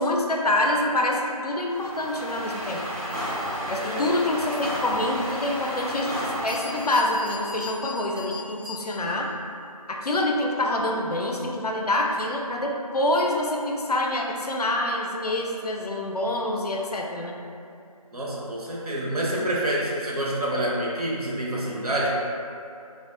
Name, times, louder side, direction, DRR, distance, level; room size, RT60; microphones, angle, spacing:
voice 1, 0.0-2.9 3.7-9.3 9.9-17.4, left 1 dB, 75° left, 0 dB, 0.4 m, -26 dB
sound 1, 1.7-7.4, equal, ahead, 0.4 m, -32 dB
Bell, 6.5-9.3, left 3 dB, 90° right, 1.0 m, -40 dB
voice 2, 18.1-22.1, right 1 dB, 70° right, -5 dB, 0.6 m, -27 dB
2.1 x 2.1 x 2.8 m, 2.6 s
figure-of-eight pair, 175°, 20 cm